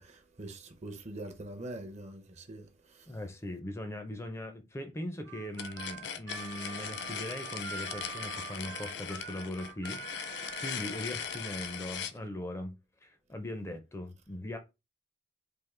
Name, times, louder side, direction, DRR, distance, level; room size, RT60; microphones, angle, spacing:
voice 1, 0.0-3.1, right 1 dB, 40° right, 0.6 m, -44 dB
voice 2, 3.1-10.2 10.6-12.7 13.0-14.6, left 1 dB, 15° left, 0.5 m, -40 dB
Harmonica, 5.2-11.8, right 6 dB, 80° right, 0.9 m, -45 dB
sound 1, 5.5-12.2, left 8 dB, 70° left, 0.5 m, -39 dB
3.6 x 2.5 x 3.2 m
head